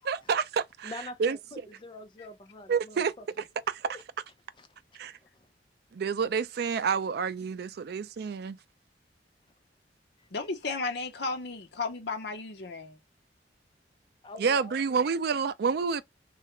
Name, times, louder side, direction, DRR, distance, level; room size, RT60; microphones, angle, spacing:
voice 1, 0.1-0.9 1.2-1.4 2.7-3.1 3.7-3.9 4.9-5.1 5.9-8.6 14.4-16.0, right 6 dB, 60° right, 0.4 m, -28 dB
voice 2, 0.8-3.3 3.8-4.0 4.6-4.7 4.9-5.0 5.3-5.5 14.2-14.7 15.0-15.1, left 2 dB, 25° left, 0.6 m, -45 dB
voice 3, 10.3-13.0, left 3 dB, 65° left, 0.7 m, -34 dB
3.2 x 2.4 x 2.9 m
head